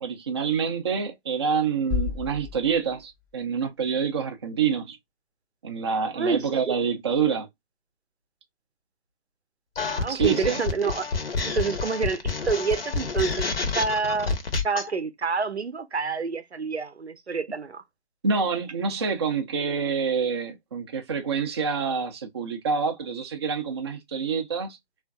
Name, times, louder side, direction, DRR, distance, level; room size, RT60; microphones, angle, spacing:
voice 1, 0.0-5.0 5.6-7.5 10.1-10.6 18.2-24.8, right 6 dB, 25° right, 0.5 m, -27 dB
sound 1, 1.9-3.7, left 5 dB, 15° left, 0.6 m, -32 dB
voice 2, 6.2-6.7 9.8-11.1 11.4-14.3 14.6-17.8, right 4 dB, 80° right, 0.7 m, -28 dB
sound 2, 9.8-14.9, left 4 dB, 60° left, 0.8 m, -28 dB
3.4 x 2.5 x 2.3 m
figure-of-eight pair, 135°, 33 cm